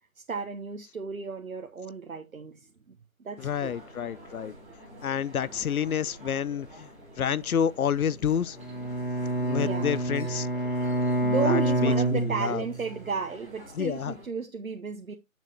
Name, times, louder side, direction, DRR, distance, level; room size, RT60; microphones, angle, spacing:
voice 1, 0.2-3.7 9.5-10.0 11.2-15.1, right 5 dB, 75° right, 1.1 m, -34 dB
voice 2, 3.4-4.5 5.0-6.9 7.2-8.6 9.4-10.5 11.4-12.6 13.8-14.2, left 8 dB, 90° left, 0.6 m, -29 dB
sound 1, 3.4-14.2, right 1 dB, 10° right, 1.8 m, -48 dB
Bowed string instrument, 8.6-12.9, right 1 dB, 40° left, 1.5 m, -27 dB
7.8 x 7.3 x 2.8 m
figure-of-eight pair, 180°, 42 cm